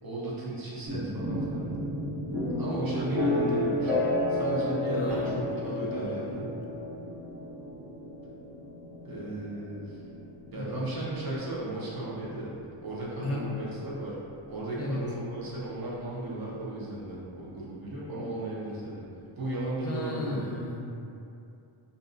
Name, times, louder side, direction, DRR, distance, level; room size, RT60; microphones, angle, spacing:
voice 1, 0.0-1.7 2.6-6.5 9.0-10.0 10.5-12.5 12.8-14.1 14.5-19.0 19.4-20.5, right 1 dB, 45° right, -7 dB, 0.8 m, -35 dB
sound 1, 0.9-14.6, left 1 dB, 90° right, 1.0 m, -32 dB
voice 2, 3.0-3.6 4.9-6.5 10.5-10.9 13.2-13.6 14.8-15.1 19.8-21.0, left 2 dB, 30° left, -3 dB, 0.5 m, -36 dB
2.6 x 2.3 x 2.5 m, 2.6 s
cardioid pair, 70°, 49 cm